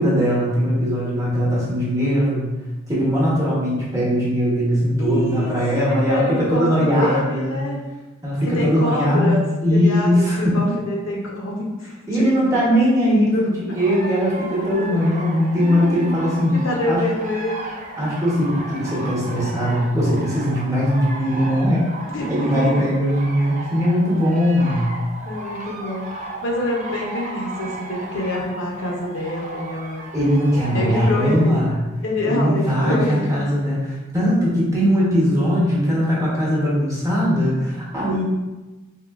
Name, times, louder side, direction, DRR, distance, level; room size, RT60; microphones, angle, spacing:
voice 1, 0.0-2.5 2.9-7.6 8.2-10.7 12.1-16.6 16.9-17.0 18.0-21.9 22.3-24.9 30.1-31.8 32.2-38.2, equal, 15° right, -7 dB, 1.0 m, -20 dB
voice 2, 5.0-5.5 5.8-7.8 8.4-12.6 13.0-13.4 15.6-17.6 22.1-22.7 25.3-30.0 30.7-31.6 32.0-33.5, left 1 dB, 65° left, -2 dB, 0.6 m, -26 dB
sound 1, 13.7-31.6, right 1 dB, 35° right, 0.4 m, -35 dB
3.6 x 2.6 x 2.4 m, 1.1 s
head